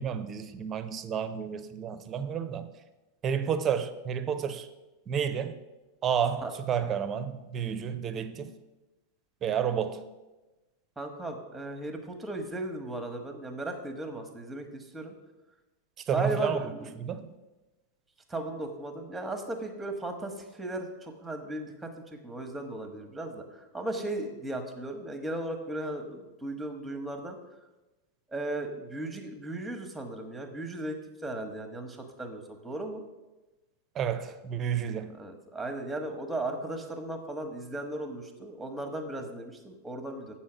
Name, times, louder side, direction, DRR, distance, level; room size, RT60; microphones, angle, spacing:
voice 1, 0.0-2.7 3.2-4.7 5.1-5.6 6.0-8.5 9.4-10.0 16.1-16.6 17.0-17.3 33.9-35.2, right 8 dB, 25° right, 0.6 m, -30 dB
voice 2, 11.0-15.1 16.1-16.9 18.3-27.4 28.3-31.0 31.2-33.0 35.1-40.4, right 2 dB, 5° right, 1.0 m, -36 dB
7.5 x 4.3 x 6.0 m
figure-of-eight pair, 90°, 0 cm